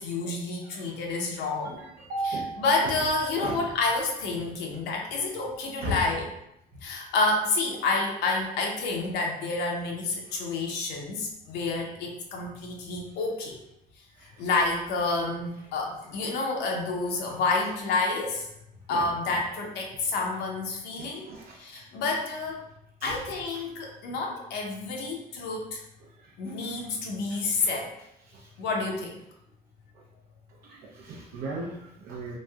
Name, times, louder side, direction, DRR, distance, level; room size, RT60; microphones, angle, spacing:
voice 1, 0.0-1.8 2.2-6.3 6.8-13.6 14.4-18.5 18.9-21.3 21.6-22.6 23.0-25.8 26.4-27.9 28.6-29.2, left 3 dB, 85° left, 0 dB, 0.6 m, -29 dB
voice 2, 0.6-1.1 1.6-2.9 3.3-3.7 5.8-6.0 10.3-10.5 14.2-14.3 16.2-16.3 18.9-19.1 21.0-21.8 23.0-23.2 23.5-23.6 26.2-26.5 27.3-27.7 28.2-28.5 30.6-32.4, right 2 dB, 65° right, -4 dB, 0.5 m, -37 dB
3.0 x 2.5 x 2.3 m, 0.79 s
cardioid pair, 110°, 17 cm